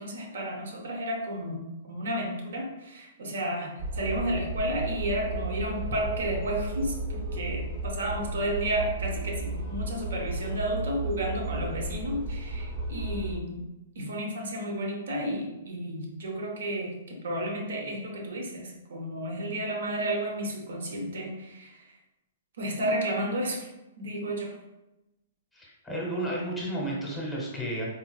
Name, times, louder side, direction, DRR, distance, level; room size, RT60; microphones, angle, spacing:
voice 1, 0.0-13.6 14.0-21.8 22.6-23.7 24.0-24.5, right 1 dB, 80° right, 1 dB, 0.8 m, -32 dB
sound 1, 3.8-13.3, right 1 dB, 45° right, 0.6 m, -34 dB
voice 2, 25.5-27.8, right 1 dB, 5° left, -5 dB, 0.8 m, -32 dB
3.9 x 2.3 x 2.3 m, 0.97 s
hypercardioid pair, 160°, 0 cm